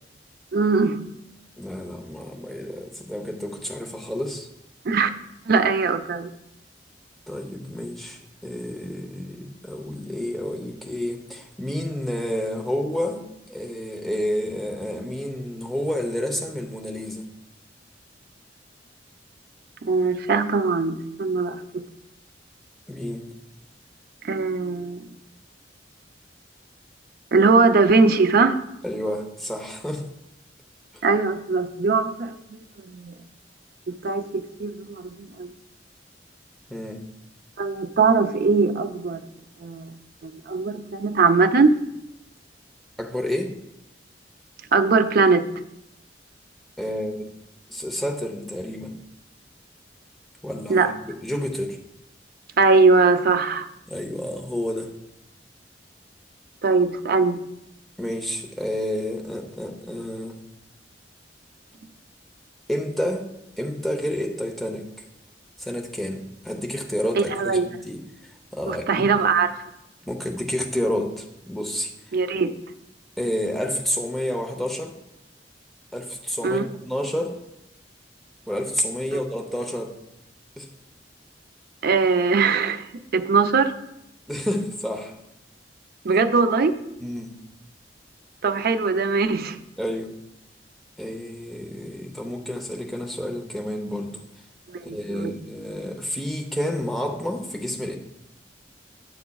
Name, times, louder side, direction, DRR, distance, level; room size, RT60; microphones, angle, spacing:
voice 1, 0.5-1.0 4.9-5.1 5.5-6.3 19.8-21.8 24.2-25.0 27.3-28.6 31.0-32.4 32.9-33.1 33.9-35.5 37.6-39.2 39.6-39.9 40.2-41.8 44.7-45.5 50.7-50.9 52.6-53.7 56.6-57.4 67.2-67.6 68.7-69.5 72.1-72.5 76.4-76.6 81.8-82.9 83.1-83.7 86.0-86.8 88.4-89.6 94.7-95.3, right 4 dB, 60° right, 9 dB, 0.5 m, -20 dB
voice 2, 1.6-4.5 7.3-17.3 22.9-23.3 28.8-30.1 30.9-31.0 36.7-37.0 43.0-43.6 46.8-47.3 47.7-49.0 50.4-51.8 53.9-54.9 58.0-60.4 62.7-64.9 65.6-68.0 68.5-69.0 70.1-71.9 73.2-75.0 75.9-77.4 78.5-79.9 80.6-80.7 84.3-85.1 87.0-87.3 89.8-90.1 91.0-94.2 94.8-98.0, equal, ahead, 1 dB, 0.7 m, -30 dB
9.4 x 6.8 x 2.3 m, 0.83 s
head